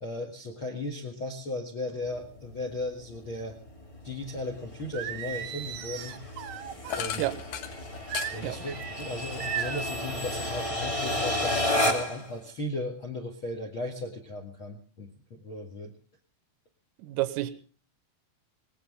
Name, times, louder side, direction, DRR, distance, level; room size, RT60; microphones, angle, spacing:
voice 1, 0.0-3.6 4.0-6.2 6.9-7.3 8.3-15.9, left 1 dB, 65° left, 5 dB, 1.3 m, -36 dB
sound 1, 2.0-12.3, left 1 dB, 50° left, 0.4 m, -33 dB
Singing, 4.9-7.1 8.1-8.9 9.4-9.9, right 10 dB, 65° right, 2.1 m, -36 dB
sound 2, 6.9-10.9 11.2-12.4, left 9 dB, 90° left, 1.8 m, -40 dB
voice 2, 17.0-17.5, right 17 dB, 90° right, 13 dB, 3.6 m, -29 dB
19.5 x 18.5 x 3.7 m, 0.41 s
omnidirectional pair, 5.7 m